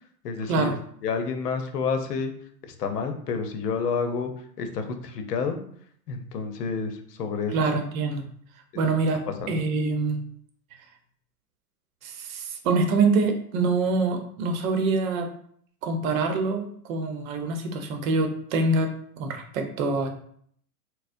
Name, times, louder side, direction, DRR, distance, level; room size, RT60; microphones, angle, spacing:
voice 1, 0.2-0.7 1.0-2.3 2.6-5.6 6.1-7.7 8.8-8.9 9.4-9.6, left 5 dB, 85° left, 7 dB, 0.7 m, -29 dB
voice 2, 7.5-8.3 8.7-10.2 12.0-15.3 15.8-18.9 19.2-20.1, right 3 dB, 60° right, 5 dB, 0.8 m, -25 dB
4.1 x 2.1 x 2.5 m, 0.63 s
hypercardioid pair, 110°, 46 cm